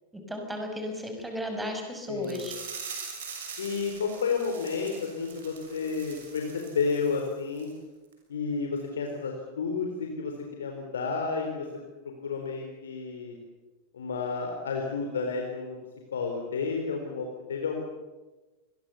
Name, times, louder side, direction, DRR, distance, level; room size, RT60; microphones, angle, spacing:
voice 1, 0.1-2.6, left 1 dB, 5° right, 4 dB, 6.4 m, -34 dB
voice 2, 2.1-2.5 3.6-7.7 8.3-11.7 12.2-13.4 13.9-15.8 16.1-17.8, left 5 dB, 65° left, 2 dB, 4.0 m, -31 dB
sound 1, 2.2-7.3 7.6-7.7 8.1-8.2, right 6 dB, 60° right, 6.7 m, -43 dB
27.0 x 22.0 x 7.0 m, 1.2 s
figure-of-eight pair, 90°, 0 cm